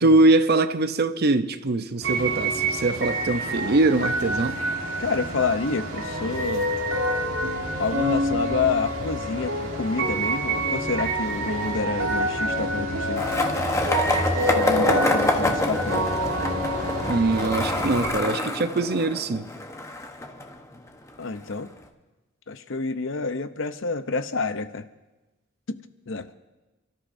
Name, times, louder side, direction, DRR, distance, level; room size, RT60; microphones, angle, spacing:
voice 1, 0.0-4.6 17.1-19.5, right 2 dB, 50° right, 0.6 m, -22 dB
sound 1, 2.0-18.1, right 1 dB, 80° right, 2.3 m, -27 dB
voice 2, 5.0-6.7 7.8-13.3 14.4-16.0 21.2-21.7 22.5-24.9 25.7-25.8 26.1-26.3, left 4 dB, 70° left, 0.7 m, -28 dB
Skateboard, 13.2-21.1, left 2 dB, 15° left, 1.0 m, -27 dB
30.0 x 13.5 x 2.7 m
head